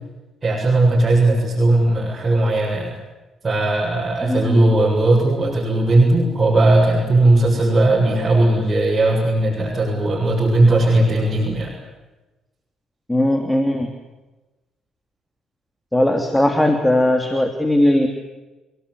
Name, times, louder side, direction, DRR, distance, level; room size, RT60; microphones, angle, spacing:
voice 1, 0.4-2.9 3.4-11.8, right 2 dB, 30° right, -3 dB, 7.5 m, -17 dB
voice 2, 4.3-4.8 13.1-13.9 15.9-18.1, left 1 dB, 10° left, 5 dB, 3.2 m, -18 dB
30.0 x 18.0 x 9.9 m, 1.1 s
hypercardioid pair, 55°, 0 cm